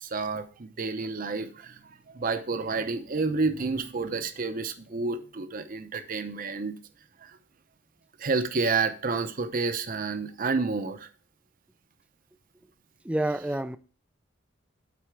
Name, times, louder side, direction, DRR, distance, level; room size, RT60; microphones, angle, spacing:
voice 1, 0.0-6.7 7.2-7.3 8.2-11.1, right 4 dB, 45° right, 0.7 m, -30 dB
voice 2, 13.0-13.8, right 1 dB, 5° right, 0.3 m, -28 dB
8.4 x 4.3 x 4.6 m
head